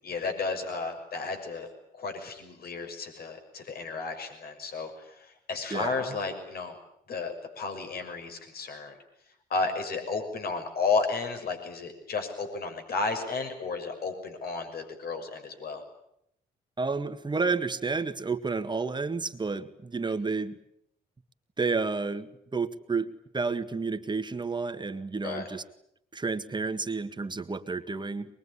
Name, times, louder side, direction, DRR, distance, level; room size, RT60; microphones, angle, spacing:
voice 1, 0.0-1.7 1.9-6.8 7.1-9.0 9.5-15.8 25.2-25.5, left 4 dB, 65° left, 5 dB, 6.2 m, -33 dB
voice 2, 5.7-6.2 16.8-20.6 21.6-23.1 23.3-25.6 26.1-28.3, right 4 dB, 25° right, 9 dB, 1.9 m, -31 dB
23.0 x 22.5 x 9.9 m, 0.75 s
cardioid pair, 80°, 17 cm